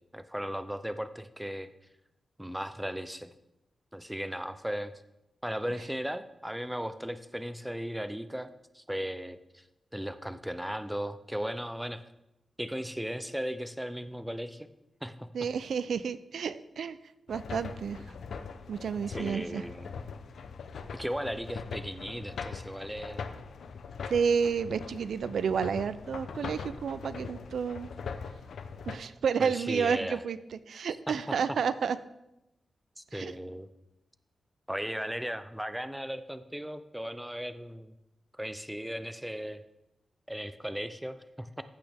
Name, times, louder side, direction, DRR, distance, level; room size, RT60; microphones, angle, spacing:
voice 1, 0.1-1.7 2.4-3.3 3.9-4.9 5.4-9.6 9.9-12.0 12.6-14.7 15.0-15.5 18.1-18.2 19.1-19.9 20.9-23.2 29.4-30.2 31.1-31.4 33.0-33.7 34.7-37.9 38.3-39.6 40.3-41.6, equal, 5° right, 11 dB, 0.4 m, -36 dB
voice 2, 15.3-17.0 17.3-18.0 18.7-19.6 24.1-27.9 28.8-30.4 30.7-32.0 33.1-33.3, right 6 dB, 80° right, 15 dB, 0.4 m, -30 dB
sound 1, 17.3-28.9, left 5 dB, 85° left, 0.6 m, -41 dB
14.5 x 6.2 x 3.4 m, 0.90 s
wide cardioid pair, 145°, 0 cm